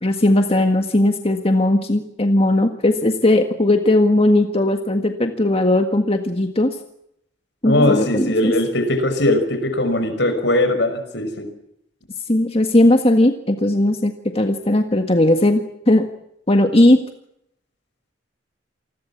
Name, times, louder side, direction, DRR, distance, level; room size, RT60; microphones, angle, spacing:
voice 1, 0.0-6.8 7.6-8.5 12.3-16.0 16.5-17.0, left 1 dB, 30° left, 6 dB, 1.7 m, -17 dB
voice 2, 7.6-11.5, left 1 dB, 70° left, 9 dB, 5.7 m, -20 dB
28.5 x 20.5 x 7.3 m, 0.75 s
head